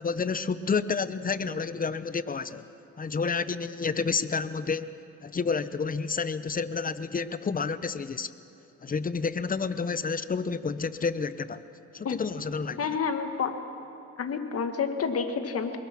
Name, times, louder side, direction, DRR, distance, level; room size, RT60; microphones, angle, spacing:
voice 1, 0.0-2.7 3.0-8.3 8.8-11.6 11.9-13.0, left 5 dB, 30° left, 13 dB, 0.9 m, -30 dB
voice 2, 12.8-13.5 14.2-15.8, left 6 dB, 50° left, 7 dB, 1.8 m, -29 dB
23.5 x 21.5 x 6.1 m, 3.0 s
cardioid pair, 90°, 30 cm